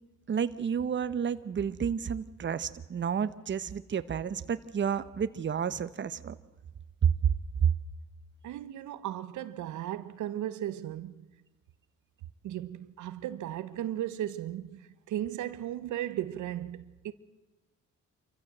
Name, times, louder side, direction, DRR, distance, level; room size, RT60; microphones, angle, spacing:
voice 1, 0.3-6.4 7.0-7.1 7.6-7.7, right 7 dB, 40° right, 0.9 m, -30 dB
voice 2, 8.4-11.3 12.4-17.1, right 12 dB, 80° right, 0.9 m, -36 dB
26.5 x 14.5 x 7.7 m
cardioid pair, 90°, 30 cm